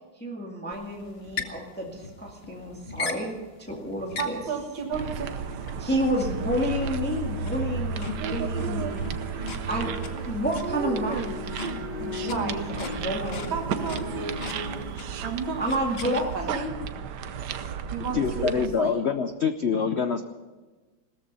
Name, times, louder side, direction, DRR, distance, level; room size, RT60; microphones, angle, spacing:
voice 1, 0.2-4.4 5.8-9.1 9.7-9.9 10.3-11.4 12.0-13.6 15.6-16.9, equal, 5° left, -1 dB, 2.0 m, -30 dB
sound 1, 0.7-16.5, left 4 dB, 40° left, 1.1 m, -41 dB
voice 2, 4.2-5.3 12.3-12.6 13.5-14.3 15.2-15.6 16.3-16.6 17.9-19.3, right 5 dB, 90° right, 2 dB, 2.5 m, -33 dB
sound 2, 4.9-18.7, right 6 dB, 65° right, 1.3 m, -33 dB
sound 3, 5.8-14.8, equal, 25° right, 5.6 m, -38 dB
voice 3, 18.1-20.2, left 6 dB, 80° left, 8 dB, 0.5 m, -25 dB
17.5 x 14.0 x 5.5 m, 1.2 s
omnidirectional pair, 2.1 m